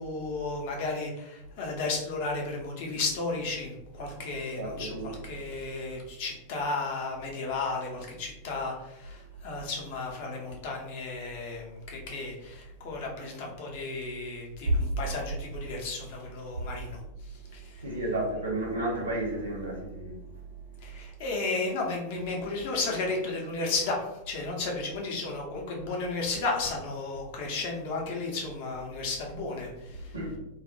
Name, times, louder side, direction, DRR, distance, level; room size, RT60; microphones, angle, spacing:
voice 1, 0.0-17.0 17.5-17.8 20.8-30.1, left 3 dB, 50° left, -1 dB, 0.6 m, -33 dB
voice 2, 4.5-5.1 14.7-14.8 17.8-20.2 30.1-30.4, right 1 dB, 80° right, -2 dB, 0.7 m, -31 dB
2.4 x 2.1 x 2.7 m, 0.91 s
figure-of-eight pair, 90°, 0 cm